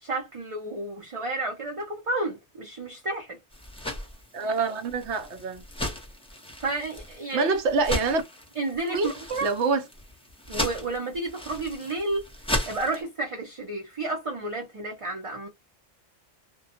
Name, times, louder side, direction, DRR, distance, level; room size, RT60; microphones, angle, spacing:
voice 1, 0.0-3.4 6.6-7.5 8.6-9.5 10.5-12.3 12.7-15.5, right 2 dB, 40° right, 0.5 m, -31 dB
sound 1, 3.5-13.0, left 1 dB, 5° left, 0.6 m, -36 dB
voice 2, 4.3-5.6 7.3-8.2 8.9-9.1 9.4-9.8, right 4 dB, 70° right, 0.9 m, -25 dB
2.2 x 2.1 x 2.7 m
omnidirectional pair, 1.2 m